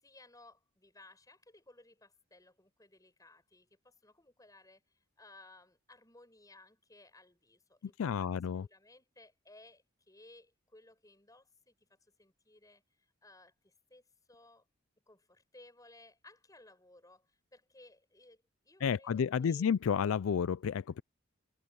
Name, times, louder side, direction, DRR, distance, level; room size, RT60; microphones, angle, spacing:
voice 1, 0.0-14.7 15.1-19.7, left 2 dB, 15° left, 7.6 m, -60 dB
voice 2, 8.0-8.6 18.8-21.0, left 7 dB, 75° left, 0.4 m, -31 dB
head